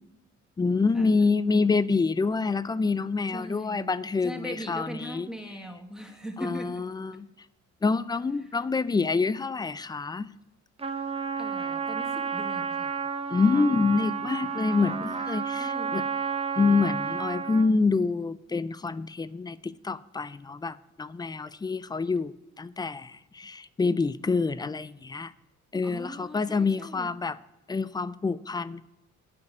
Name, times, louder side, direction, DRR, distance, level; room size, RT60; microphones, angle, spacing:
voice 1, 0.6-5.3 6.4-7.3 7.8-10.3 13.3-16.0 16.6-25.3 25.7-27.4 27.7-28.8, left 4 dB, 15° left, 17 dB, 0.4 m, -27 dB
voice 2, 3.3-3.9 4.2-6.9 8.4-8.6 11.4-13.0 14.8-15.1 15.6-16.0 25.8-27.1, equal, ahead, 4 dB, 1.4 m, -40 dB
Trumpet, 10.8-17.7, right 6 dB, 20° right, 0.8 m, -31 dB
9.5 x 5.2 x 8.0 m, 0.97 s
cardioid pair, 90°, 30 cm